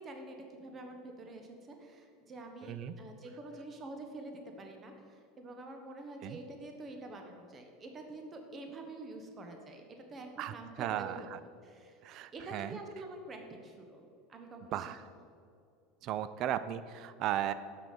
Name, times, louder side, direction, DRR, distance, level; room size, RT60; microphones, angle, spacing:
voice 1, 0.0-11.3 11.6-12.0 12.3-15.2, right 2 dB, 30° right, 4 dB, 1.1 m, -47 dB
voice 2, 2.6-3.0 6.2-6.4 10.4-11.4 12.0-12.8 14.7-15.0 16.0-17.5, right 11 dB, 55° right, 13 dB, 0.3 m, -36 dB
6.1 x 6.1 x 5.1 m, 2.4 s
supercardioid pair, 105°, 0 cm